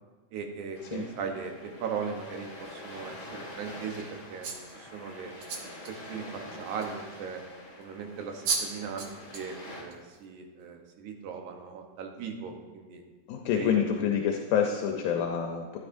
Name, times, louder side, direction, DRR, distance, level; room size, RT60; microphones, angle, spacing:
voice 1, 0.3-4.1 4.3-5.3 5.7-6.3 6.5-7.4 7.8-13.0 13.5-13.7, right 6 dB, 75° right, 3 dB, 2.4 m, -38 dB
sound 1, 0.7-9.8, left 1 dB, 35° left, 2.4 m, -46 dB
sound 2, 4.4-4.8 5.4-5.9 6.8-6.9 8.1-8.2 8.4-8.7 9.0-9.5 9.9-10.2, right 5 dB, 60° right, 1.5 m, -32 dB
voice 2, 13.3-15.8, left 8 dB, 80° left, 2 dB, 2.1 m, -27 dB
13.0 x 9.5 x 2.6 m, 1.3 s
omnidirectional pair, 3.6 m